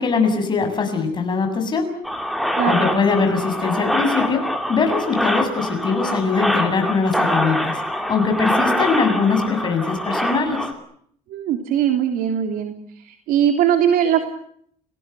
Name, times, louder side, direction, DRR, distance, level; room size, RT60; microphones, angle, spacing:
voice 1, 0.0-1.9 2.6-7.8 8.1-10.7, left 4 dB, 30° left, 4 dB, 7.3 m, -21 dB
sound 1, 2.0-10.7, equal, ahead, 3.6 m, -24 dB
voice 2, 11.3-12.7 13.3-14.3, right 9 dB, 75° right, 5 dB, 3.1 m, -19 dB
30.0 x 19.0 x 8.1 m, 0.64 s
cardioid pair, 130°, 15 cm